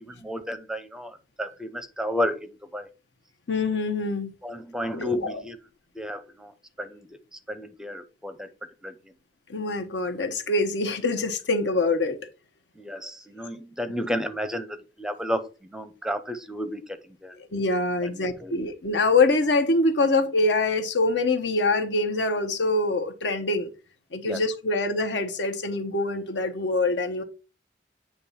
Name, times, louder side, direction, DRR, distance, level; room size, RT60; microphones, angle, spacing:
voice 1, 0.0-2.9 4.4-5.6 5.9-6.5 6.8-8.5 8.8-8.9 12.8-17.4 18.0-18.6 24.2-24.4, equal, 5° right, 0.5 m, -32 dB
voice 2, 3.5-4.3 4.9-5.4 9.5-12.2 17.4-23.7 24.1-27.2, left 2 dB, 75° left, 1.0 m, -24 dB
8.5 x 2.9 x 5.6 m
head